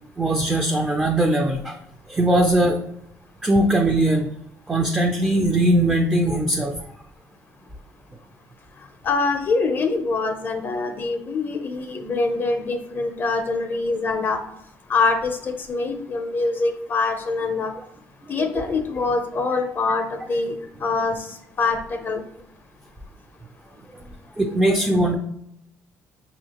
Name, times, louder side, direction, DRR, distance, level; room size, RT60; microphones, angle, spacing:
voice 1, 0.2-1.8 2.1-2.8 3.4-4.3 4.7-6.7 18.2-18.6 19.5-19.6 23.9-24.1 24.4-25.1, right 1 dB, 15° right, 3 dB, 0.4 m, -20 dB
voice 2, 9.0-14.4 14.9-17.7 18.3-22.2, left 3 dB, 35° left, 5 dB, 0.5 m, -24 dB
5.7 x 2.7 x 2.9 m, 0.78 s
cardioid pair, 110°, 6 cm